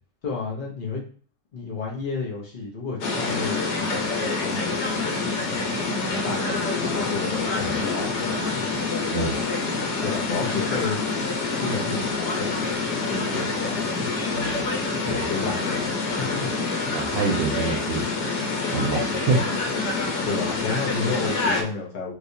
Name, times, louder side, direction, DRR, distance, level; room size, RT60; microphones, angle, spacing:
voice 1, 0.2-1.0 1.5-8.7 10.0-11.0 11.3-14.1 15.0-16.7 20.2-22.1, left 4 dB, 85° left, -2 dB, 0.4 m, -32 dB
sound 1, 3.0-21.6, left 3 dB, 65° left, 1.3 m, -26 dB
voice 2, 16.9-18.1 18.7-19.6, right 4 dB, 75° right, 2 dB, 1.2 m, -26 dB
3.3 x 3.2 x 2.7 m, 0.43 s
omnidirectional pair, 2.0 m